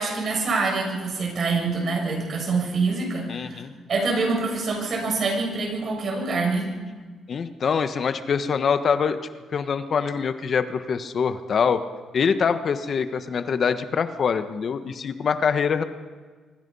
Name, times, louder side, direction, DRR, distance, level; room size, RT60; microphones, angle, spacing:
voice 1, 0.0-3.6 3.9-6.7, right 3 dB, 55° right, 1 dB, 7.6 m, -25 dB
voice 2, 3.3-3.7 7.3-9.2 9.5-11.8 12.1-15.8, left 6 dB, 50° left, 9 dB, 1.4 m, -24 dB
25.0 x 24.5 x 5.6 m, 1.4 s
cardioid pair, 90°, 0 cm